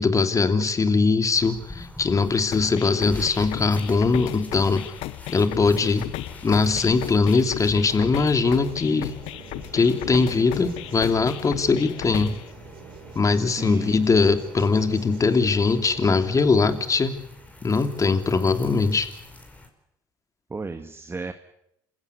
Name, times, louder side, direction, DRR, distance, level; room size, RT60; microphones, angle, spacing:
voice 1, 0.0-4.9 5.3-6.1 6.4-9.1 9.7-12.4 13.1-17.1 17.6-19.1, left 4 dB, 30° left, 8 dB, 3.0 m, -21 dB
sound 1, 1.3-19.7, left 2 dB, 15° left, 5.4 m, -46 dB
sound 2, 2.5-12.5, left 16 dB, 70° left, 0.9 m, -36 dB
sound 3, 8.4-16.8, right 5 dB, 60° right, 7.8 m, -45 dB
voice 2, 13.3-13.9 20.5-21.3, right 3 dB, 20° right, 8 dB, 1.8 m, -34 dB
27.5 x 16.0 x 9.6 m, 0.80 s
hypercardioid pair, 65°, 10 cm